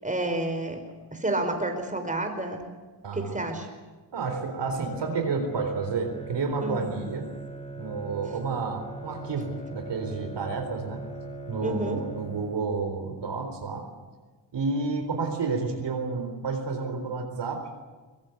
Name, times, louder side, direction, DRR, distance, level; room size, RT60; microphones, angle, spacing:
voice 1, 0.0-0.8 1.1-2.6 3.1-3.7 6.6-6.9 11.6-12.0, right 2 dB, 15° right, 5 dB, 4.9 m, -29 dB
voice 2, 3.0-3.4 4.1-7.3 7.7-11.0 11.5-13.9 14.5-17.7, right 4 dB, 65° right, 5 dB, 4.1 m, -30 dB
Bowed string instrument, 4.6-13.0, right 3 dB, 15° left, 3.4 m, -41 dB
23.0 x 19.5 x 8.1 m, 1.3 s
cardioid pair, 80°, 45 cm